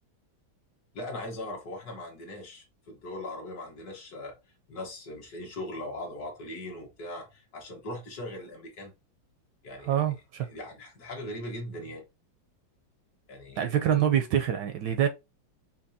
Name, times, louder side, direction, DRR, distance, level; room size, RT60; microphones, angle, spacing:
voice 1, 0.9-4.4 4.7-8.9 9.6-10.2 10.5-12.0 13.3-13.8, left 1 dB, 55° left, 1.7 m, -40 dB
voice 2, 9.9-10.5 13.6-15.1, right 10 dB, 70° right, 1.1 m, -25 dB
6.0 x 2.8 x 2.7 m
omnidirectional pair, 2.2 m